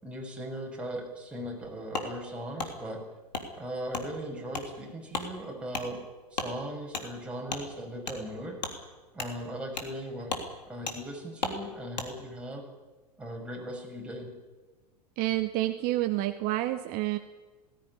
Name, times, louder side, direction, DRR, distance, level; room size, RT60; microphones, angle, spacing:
voice 1, 0.0-3.0 3.6-6.0 6.3-8.6 9.1-10.4 10.7-12.7 13.2-14.3, right 1 dB, 5° right, -1 dB, 6.7 m, -38 dB
Wood, 1.9-2.1 2.6-2.7 3.3-3.5 3.9-4.1 4.5-4.7 5.1-5.3 5.7-5.9 6.3-6.5 6.9-7.1 7.5-7.6 8.0-8.2 8.6-8.7 9.2-9.3 9.8-9.9 10.3-10.5 10.9-11.0 11.4-11.6 11.9-12.1, left 3 dB, 90° left, 3.2 m, -34 dB
voice 2, 15.2-17.2, right 16 dB, 45° right, 9 dB, 1.2 m, -28 dB
19.0 x 16.5 x 9.9 m, 1.3 s
hypercardioid pair, 95°, 21 cm